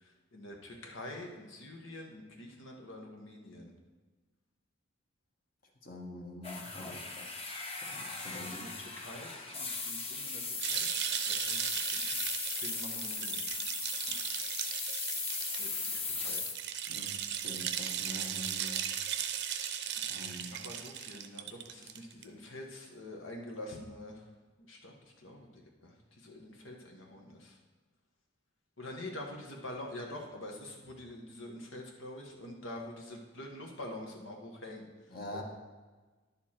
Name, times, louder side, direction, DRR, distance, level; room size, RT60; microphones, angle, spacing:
voice 1, 0.0-3.7 8.2-10.9 11.3-12.2 12.6-13.5 15.6-16.4 17.0-17.1 20.6-24.2 24.7-27.6 28.8-34.9 35.3-35.4, left 1 dB, 85° left, 1 dB, 1.4 m, -46 dB
voice 2, 5.8-7.3 7.8-8.7 16.9-17.2 17.4-18.8 20.1-20.5 35.1-35.4, left 1 dB, 50° left, 1 dB, 1.4 m, -45 dB
sound 1, 6.4-16.5, left 4 dB, 30° left, 1.0 m, -38 dB
sound 2, 10.6-22.2, right 9 dB, 60° right, 0.6 m, -37 dB
10.5 x 7.1 x 4.4 m, 1.3 s
head